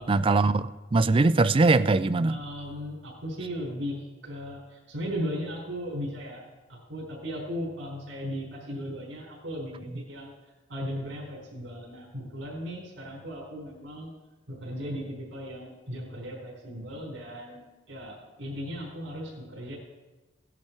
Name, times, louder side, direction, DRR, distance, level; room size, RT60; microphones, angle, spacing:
voice 1, 0.1-2.4, right 3 dB, 30° right, 15 dB, 0.4 m, -22 dB
voice 2, 2.3-6.4 6.7-10.3 10.7-14.1 14.5-19.8, equal, 85° right, -2 dB, 4.5 m, -37 dB
16.5 x 11.0 x 4.6 m, 1.1 s
head